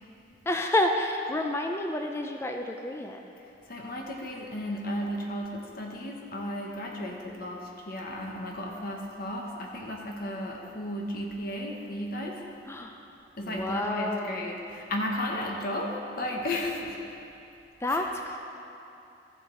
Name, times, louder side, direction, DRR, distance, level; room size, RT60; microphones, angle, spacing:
voice 1, 0.5-3.3 7.3-7.4 12.7-13.0 13.4-14.5 17.8-18.4, left 1 dB, 15° left, 3 dB, 0.4 m, -29 dB
voice 2, 3.7-12.4 13.4-17.0 17.9-18.0, left 1 dB, 55° left, 0 dB, 1.0 m, -34 dB
14.0 x 7.7 x 3.8 m, 2.9 s
head